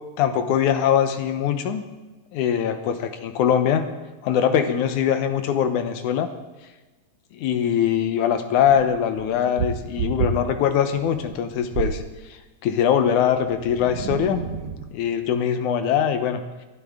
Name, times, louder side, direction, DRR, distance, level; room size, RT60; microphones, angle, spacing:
voice 1, 0.2-1.8 2.3-3.9 4.2-6.3 7.3-12.0 12.6-14.5 14.9-16.4, left 8 dB, 70° left, 8 dB, 2.1 m, -22 dB
sound 1, 8.7-12.1 13.3-15.0, right 7 dB, 75° right, 1.4 m, -30 dB
21.5 x 12.5 x 3.6 m, 1.2 s
omnidirectional pair, 4.0 m